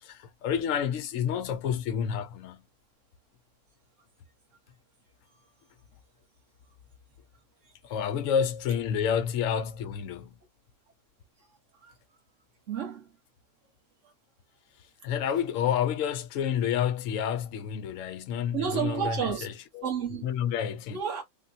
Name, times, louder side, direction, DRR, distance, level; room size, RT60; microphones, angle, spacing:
voice 1, 0.0-2.7 7.8-10.4 15.0-19.8 20.2-21.0, left 8 dB, 65° left, 0.9 m, -29 dB
voice 2, 12.7-13.1 18.5-19.5 19.8-20.2 20.9-21.2, right 7 dB, 55° right, 1.5 m, -31 dB
3.6 x 2.3 x 2.5 m
omnidirectional pair, 1.6 m